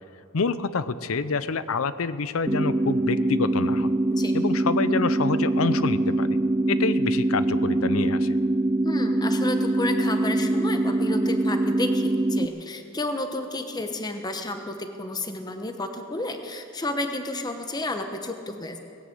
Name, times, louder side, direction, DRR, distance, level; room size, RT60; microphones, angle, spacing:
voice 1, 0.3-3.9 4.3-6.3 6.7-8.4, left 4 dB, 75° left, 14 dB, 0.6 m, -27 dB
sound 1, 2.5-12.5, right 2 dB, 15° right, 0.4 m, -23 dB
voice 2, 8.8-18.8, left 2 dB, 20° left, 6 dB, 1.0 m, -31 dB
18.5 x 10.0 x 7.8 m, 2.3 s
head